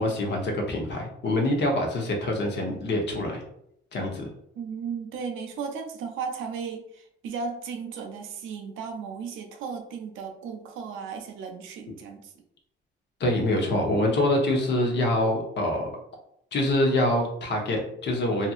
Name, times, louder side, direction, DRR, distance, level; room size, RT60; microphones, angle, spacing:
voice 1, 0.0-3.4 3.9-4.2 13.2-15.9 16.5-18.5, left 1 dB, 60° left, 1 dB, 0.8 m, -25 dB
voice 2, 4.6-12.3, right 5 dB, 85° right, 5 dB, 0.5 m, -35 dB
2.8 x 2.4 x 2.4 m, 0.73 s
cardioid pair, 90°, 20 cm